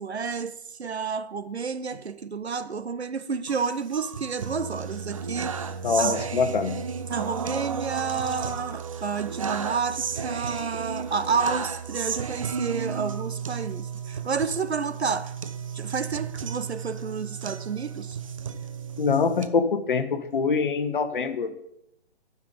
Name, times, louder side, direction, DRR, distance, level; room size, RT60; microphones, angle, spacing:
voice 1, 0.0-5.5 6.0-6.3 7.1-15.3 15.7-18.2, right 5 dB, 80° right, 0.8 m, -30 dB
sound 1, 3.5-19.5, right 6 dB, 30° right, 0.5 m, -33 dB
voice 2, 5.8-6.8 19.0-21.6, left 5 dB, 50° left, 1.1 m, -24 dB
12.0 x 5.8 x 5.1 m
figure-of-eight pair, 135°, 32 cm